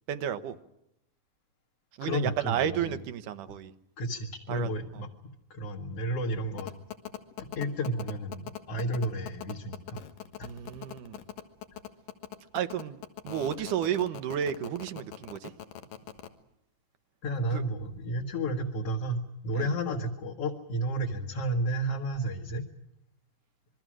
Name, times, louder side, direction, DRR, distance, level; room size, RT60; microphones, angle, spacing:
voice 1, 0.1-0.6 2.0-3.7 4.5-4.7 10.4-11.2 12.5-15.5 17.5-17.6 19.6-19.7, right 9 dB, 75° right, 10 dB, 2.6 m, -32 dB
voice 2, 2.0-2.9 4.0-5.1 5.5-6.7 7.6-10.0 10.4-10.5 13.6-13.7 17.2-22.6, right 1 dB, 50° left, 1 dB, 2.4 m, -32 dB
sound 1, 6.6-16.3, left 11 dB, 85° left, 3.1 m, -41 dB
27.0 x 22.5 x 6.3 m, 0.84 s
omnidirectional pair, 3.8 m